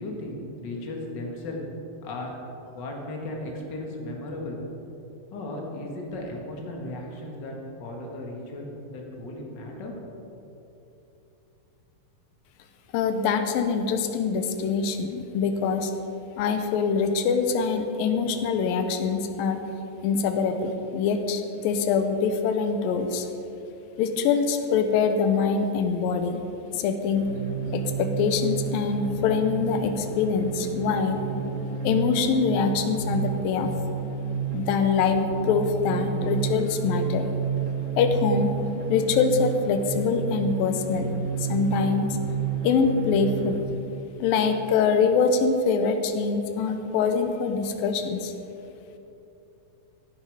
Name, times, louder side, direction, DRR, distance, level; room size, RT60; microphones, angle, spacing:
voice 1, 0.0-1.6 2.0-4.6 5.3-10.2, left 1 dB, 40° left, 0 dB, 1.7 m, -36 dB
voice 2, 12.9-15.9 16.4-19.6 20.0-23.3 24.0-26.4 26.7-27.3 27.7-31.2 31.8-33.7 34.5-37.3 38.0-38.5 38.9-42.1 42.6-43.6 44.2-48.3, left 5 dB, 80° left, 7 dB, 2.5 m, -24 dB
sound 1, 27.1-43.6, right 5 dB, 85° right, 3.3 m, -30 dB
15.5 x 9.7 x 4.9 m, 2.9 s
omnidirectional pair, 4.3 m